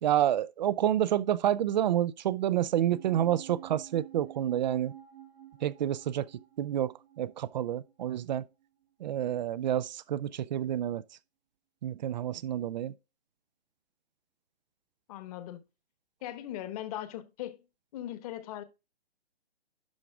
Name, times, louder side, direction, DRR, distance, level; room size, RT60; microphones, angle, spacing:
voice 1, 0.0-4.9 5.6-6.3 6.6-8.4 9.0-11.0 11.8-12.9, right 11 dB, 45° right, 0.5 m, -29 dB
sound 1, 2.6-9.2 9.4-9.5, right 13 dB, 70° right, 3.1 m, -51 dB
voice 2, 15.1-15.6 16.2-17.6 17.9-18.6, left 12 dB, 35° left, 1.2 m, -39 dB
11.5 x 4.8 x 3.5 m
hypercardioid pair, 140°, 32 cm